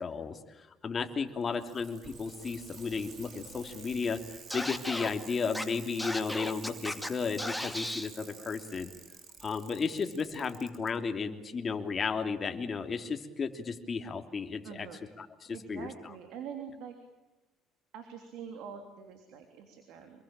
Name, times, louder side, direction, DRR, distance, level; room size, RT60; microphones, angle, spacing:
voice 1, 0.0-4.2 4.5-8.9 9.4-14.9 15.2-15.9, left 5 dB, 35° left, 5 dB, 3.0 m, -34 dB
Bicycle, 1.3-10.9 12.0-12.1, right 6 dB, 55° right, 5.5 m, -51 dB
Scratching (performance technique), 4.5-5.1 5.5-5.6 6.0-7.1 7.4-8.1, left 1 dB, 5° left, 2.4 m, -35 dB
voice 2, 14.6-15.1 15.5-17.0 17.9-20.2, right 7 dB, 70° right, 6 dB, 3.3 m, -45 dB
26.5 x 23.0 x 8.9 m, 1.1 s
supercardioid pair, 75°, 0 cm